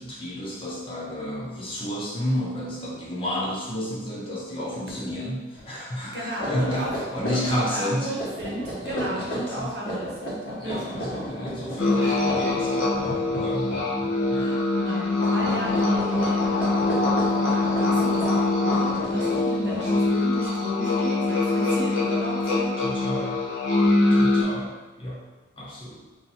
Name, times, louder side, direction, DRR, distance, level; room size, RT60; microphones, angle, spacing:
voice 1, 0.0-6.9 7.1-8.1 8.8-9.7 10.6-13.7 14.3-14.5 22.8-23.4 24.1-25.2 25.6-26.0, left 1 dB, 25° left, -4 dB, 0.7 m, -31 dB
sound 1, 4.8-5.2 5.5-5.7 6.2-14.3 14.6-14.9 15.2-20.3, equal, 50° left, 1.2 m, -34 dB
voice 2, 6.1-6.9 7.3-11.0 12.0-12.2 14.3-16.7 17.1-22.8 24.1-24.4, right 1 dB, 60° right, -4 dB, 0.8 m, -34 dB
sound 2, 11.8-24.4, left 2 dB, 90° left, 1.0 m, -23 dB
2.9 x 2.7 x 4.0 m, 1.1 s
head